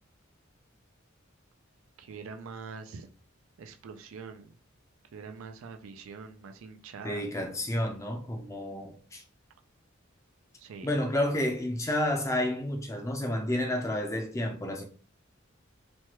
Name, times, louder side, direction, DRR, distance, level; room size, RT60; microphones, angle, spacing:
voice 1, 2.0-3.1 3.6-4.6 5.1-7.3 10.6-10.9, right 5 dB, 85° right, 0.4 m, -44 dB
voice 2, 7.0-9.2 10.8-14.8, left 1 dB, 15° left, 0.4 m, -30 dB
3.1 x 2.2 x 2.9 m
head